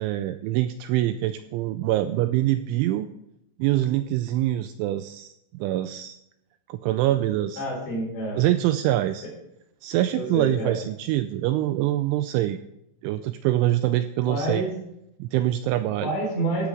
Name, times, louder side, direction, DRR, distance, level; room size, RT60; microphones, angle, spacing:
voice 1, 0.0-3.1 3.6-5.3 5.6-6.2 6.7-7.6 8.4-9.3 9.8-12.6 13.0-14.6 15.2-16.1, right 14 dB, 85° right, 10 dB, 2.8 m, -24 dB
voice 2, 7.6-8.4 10.1-10.7 14.3-14.7 16.0-16.7, right 1 dB, 60° left, -1 dB, 6.6 m, -28 dB
15.0 x 13.0 x 3.7 m, 0.82 s
omnidirectional pair, 5.9 m